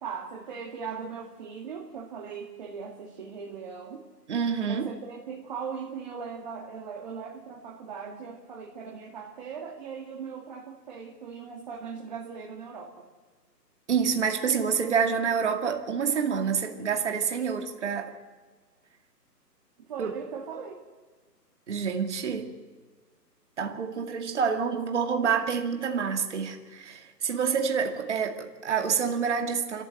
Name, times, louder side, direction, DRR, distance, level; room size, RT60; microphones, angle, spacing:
voice 1, 0.0-4.0 4.7-13.1 19.8-20.8, right 6 dB, 25° right, -1 dB, 2.2 m, -39 dB
voice 2, 4.3-4.9 13.9-18.1 20.0-20.1 21.7-22.5 23.6-29.8, right 6 dB, 45° right, 4 dB, 2.4 m, -27 dB
27.0 x 13.5 x 7.9 m, 1.4 s
hypercardioid pair, 165°, 50 cm